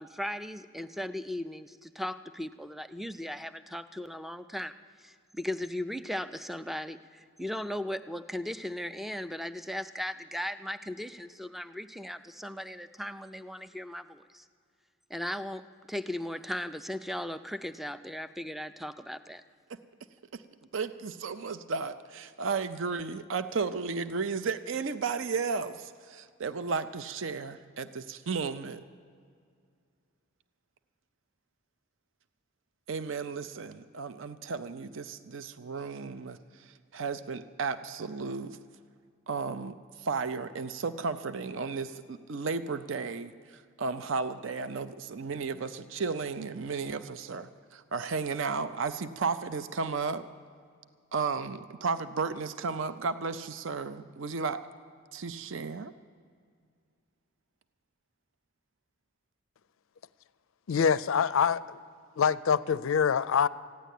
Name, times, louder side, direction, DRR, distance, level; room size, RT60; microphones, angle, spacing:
voice 1, 0.0-4.7 5.0-14.4 15.1-15.6 15.9-19.4, left 1 dB, ahead, 11 dB, 0.3 m, -37 dB
voice 2, 20.7-28.8 32.9-36.4 36.9-38.6 39.3-50.2 51.1-54.6 55.1-55.9, right 4 dB, 60° right, 12 dB, 0.5 m, -34 dB
voice 3, 60.7-61.8 62.2-63.5, left 7 dB, 65° left, 17 dB, 0.4 m, -25 dB
15.5 x 10.5 x 8.3 m, 2.2 s
head